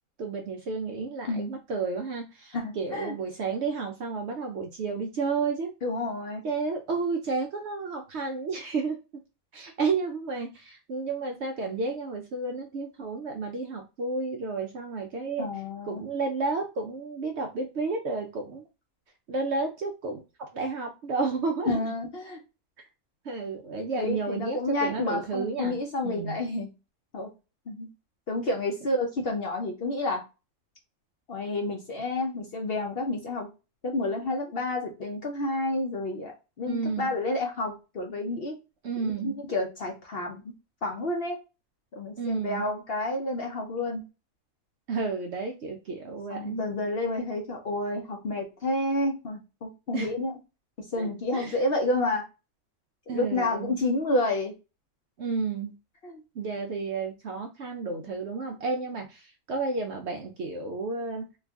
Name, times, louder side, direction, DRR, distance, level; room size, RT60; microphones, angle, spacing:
voice 1, 0.2-5.7 6.4-9.0 9.5-15.5 15.9-18.6 19.3-20.2 20.5-21.8 23.3-25.8 26.0-26.4 36.7-37.1 38.8-39.4 42.2-42.7 44.9-46.7 49.9-50.1 51.0-51.5 53.1-53.7 55.2-55.7 56.4-59.2 59.5-61.2, right 4 dB, 60° right, 3 dB, 0.7 m, -31 dB
voice 2, 1.3-1.6 2.5-3.1 5.8-6.4 15.4-16.1 21.7-22.4 23.9-26.7 27.1-27.3 27.7-27.9 28.3-30.2 31.3-33.5 33.8-38.6 39.2-40.4 40.8-41.4 41.9-44.0 46.3-50.4 50.9-52.3 53.1-54.5 56.0-56.2 58.1-58.2, left 2 dB, 55° left, 2 dB, 0.7 m, -30 dB
3.0 x 2.4 x 3.4 m, 0.28 s
omnidirectional pair, 1.6 m